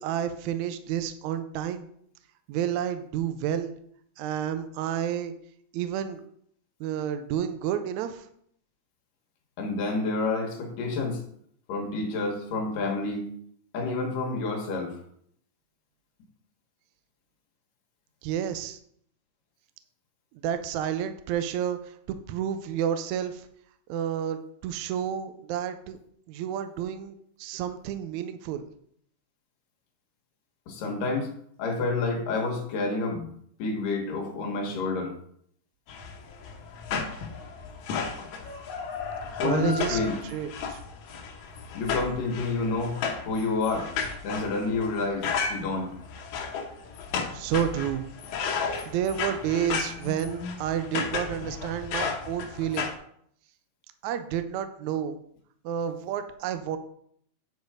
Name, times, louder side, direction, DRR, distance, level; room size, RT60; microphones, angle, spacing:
voice 1, 0.0-1.9 2.5-3.8 4.2-5.3 5.7-6.2 6.8-8.3 18.2-18.8 20.4-23.5 23.9-26.0 26.3-27.1 27.4-28.6 39.4-40.0 40.3-40.8 47.3-48.1 48.9-52.9 54.0-55.2 55.6-56.8, right 9 dB, 80° right, 9 dB, 1.8 m, -30 dB
voice 2, 9.6-11.2 11.7-13.3 13.7-15.0 30.7-31.3 31.6-33.3 33.6-35.1 39.4-40.1 41.7-43.0 43.3-43.9 44.2-45.9, left 3 dB, 85° left, 1 dB, 3.0 m, -29 dB
sound 1, 35.9-52.9, left 5 dB, 65° left, 2.2 m, -34 dB
9.5 x 4.5 x 4.8 m, 0.66 s
omnidirectional pair, 3.7 m